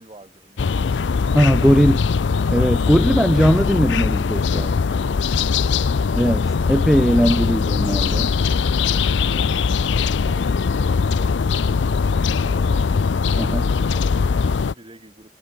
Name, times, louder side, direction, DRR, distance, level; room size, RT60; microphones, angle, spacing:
voice 1, 0.0-1.4 2.3-2.9 4.5-5.7 8.1-15.3, right 1 dB, 30° right, 5.6 m, -47 dB
sound 1, 0.6-14.7, left 5 dB, 80° left, 0.5 m, -20 dB
voice 2, 1.3-2.0 2.5-4.7 6.1-8.3 13.4-13.7, equal, ahead, 0.7 m, -19 dB
head